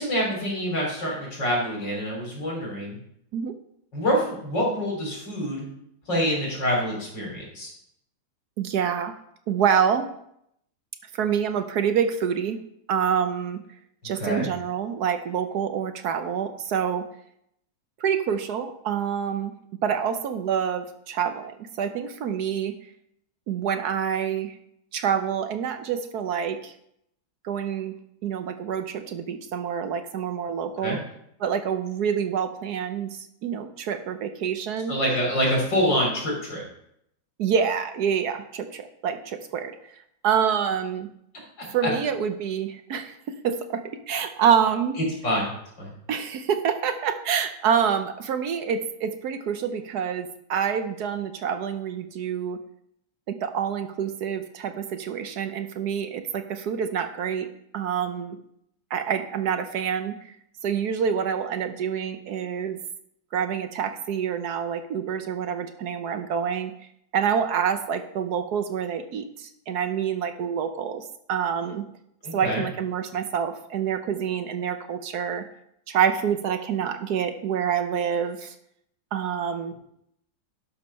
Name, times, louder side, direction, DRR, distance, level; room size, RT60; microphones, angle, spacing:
voice 1, 0.0-3.0 3.9-5.6 6.1-7.7 14.0-14.5 30.8-31.0 34.9-36.6 45.2-45.5 45.8-45.9 72.2-72.6, equal, 80° left, -2 dB, 4.2 m, -26 dB
voice 2, 8.6-9.1 9.5-10.1 11.1-12.6 12.9-13.6 14.0-17.0 18.0-19.5 19.8-22.7 23.5-24.5 24.9-26.7 27.4-27.9 28.2-31.0 31.4-35.0 37.4-39.7 40.2-41.1 41.7-43.1 43.4-45.0 46.1-52.6 53.3-57.5 57.7-58.4 58.9-60.2 60.6-62.8 63.3-66.7 67.1-71.8 72.3-75.4 75.9-78.5 79.1-79.7, right 7 dB, 65° right, 8 dB, 1.2 m, -27 dB
11.5 x 5.0 x 5.6 m, 0.74 s
omnidirectional pair, 1.9 m